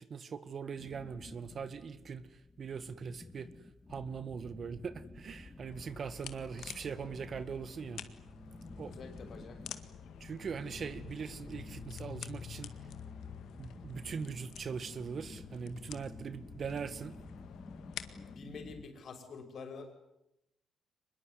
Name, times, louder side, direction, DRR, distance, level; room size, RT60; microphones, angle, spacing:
voice 1, 0.0-2.2 2.6-3.5 3.9-8.0 8.8-8.9 10.2-12.7 13.6-17.1, right 6 dB, 50° right, 14 dB, 1.9 m, -41 dB
sound 1, 0.8-18.9, left 3 dB, 25° left, 2.3 m, -52 dB
sound 2, 5.7-18.4, left 9 dB, 75° left, 1.9 m, -49 dB
Organ, 7.2-17.6, equal, 5° right, 6.3 m, -56 dB
voice 2, 8.9-9.6 18.3-19.9, left 4 dB, 55° left, 8 dB, 6.2 m, -47 dB
24.0 x 21.5 x 9.8 m, 0.86 s
cardioid pair, 90°, 0 cm